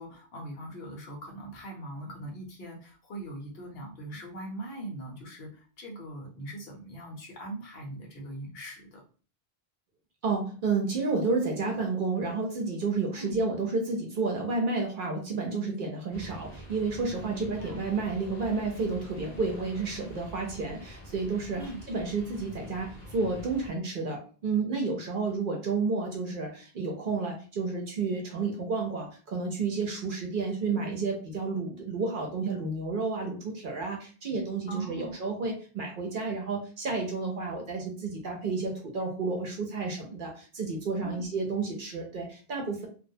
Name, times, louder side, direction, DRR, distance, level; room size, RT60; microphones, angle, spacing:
voice 1, 0.0-9.0 13.1-13.4 17.2-17.8 21.6-21.8 34.7-35.2 41.0-41.3, right 1 dB, 70° left, -1 dB, 1.0 m, -41 dB
voice 2, 10.2-42.9, right 4 dB, 60° right, 1 dB, 0.7 m, -31 dB
sound 1, 16.1-23.7, equal, 50° left, 0.8 m, -46 dB
2.4 x 2.0 x 2.6 m, 0.38 s
omnidirectional pair, 1.0 m